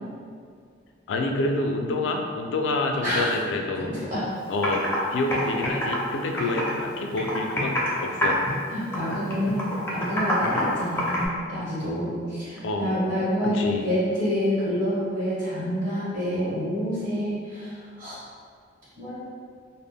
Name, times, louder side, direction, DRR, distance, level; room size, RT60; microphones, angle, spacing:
voice 1, 1.1-4.0 4.5-4.8 5.1-8.3 12.6-13.0 13.5-13.8, left 2 dB, 90° left, 3 dB, 0.3 m, -27 dB
voice 2, 3.0-3.3 3.8-4.2 6.4-6.6 8.7-18.1 19.0-19.2, equal, 45° right, -10 dB, 1.0 m, -28 dB
Computer keyboard, 4.2-4.3 4.6-5.0 5.3-6.8 7.2-7.9 8.2-8.6 8.9-11.3, equal, 10° left, 0.4 m, -26 dB
2.0 x 2.0 x 3.4 m, 2.1 s
head